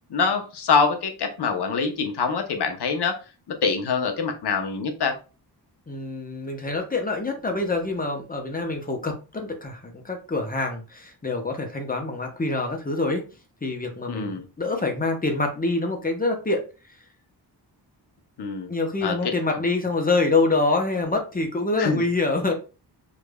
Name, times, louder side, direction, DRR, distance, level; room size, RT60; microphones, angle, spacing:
voice 1, 0.1-3.2 3.5-5.2 14.1-14.4 18.4-18.7 19.0-19.6 21.8-22.0, left 5 dB, 70° left, 5 dB, 0.8 m, -25 dB
voice 2, 5.9-13.2 13.6-16.6 18.7-22.5, left 3 dB, 20° left, 3 dB, 0.7 m, -26 dB
4.9 x 2.5 x 2.2 m, 0.32 s
wide cardioid pair, 110°, 41 cm